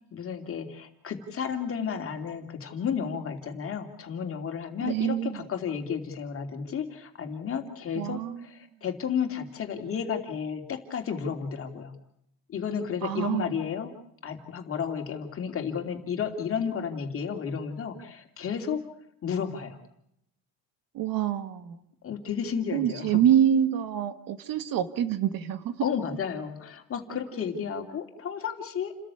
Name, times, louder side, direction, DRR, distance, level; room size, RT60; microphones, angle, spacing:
voice 1, 0.1-11.9 12.5-13.9 14.2-18.8 19.2-19.8 22.0-23.2 25.8-28.9, left 7 dB, 40° left, 5 dB, 3.1 m, -32 dB
voice 2, 4.8-5.4 8.0-8.5 13.0-13.5 20.9-21.8 22.7-25.9, right 10 dB, 70° right, 10 dB, 2.0 m, -26 dB
29.5 x 14.0 x 8.4 m, 0.75 s
cardioid pair, 150°, 35 cm